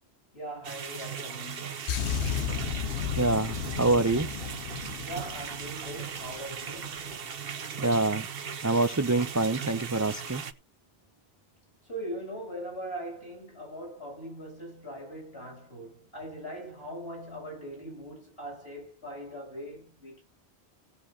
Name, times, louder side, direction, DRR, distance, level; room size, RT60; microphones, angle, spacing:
voice 1, 0.3-2.2 5.0-7.1 11.9-20.2, right 1 dB, 70° left, 7.3 m, -41 dB
sound 1, 0.6-10.5, right 7 dB, 60° right, 1.1 m, -38 dB
sound 2, 1.9-6.4 6.7-7.0, left 9 dB, 85° left, 1.0 m, -33 dB
voice 2, 3.2-4.3 7.8-8.3 8.6-10.4, right 2 dB, 30° right, 0.3 m, -26 dB
18.0 x 7.8 x 2.8 m
omnidirectional pair, 1.1 m